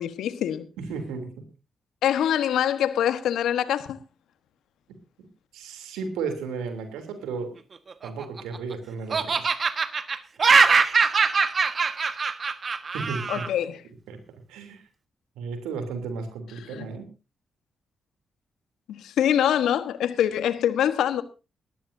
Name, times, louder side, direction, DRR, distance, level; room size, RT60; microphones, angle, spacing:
voice 1, 0.0-0.7 2.0-4.0 13.3-13.8 16.7-16.9 18.9-21.2, left 10 dB, 75° left, 1.2 m, -24 dB
voice 2, 0.8-1.5 5.2-5.3 5.5-7.6 8.0-9.5 12.9-13.4 14.1-14.2 14.5-14.8 15.4-17.1, right 5 dB, 85° right, 3.1 m, -34 dB
Laughter, 7.9-8.7 9.1-13.5, right 5 dB, 50° right, 1.4 m, -22 dB
19.5 x 14.5 x 2.7 m
hypercardioid pair, 45°, 0 cm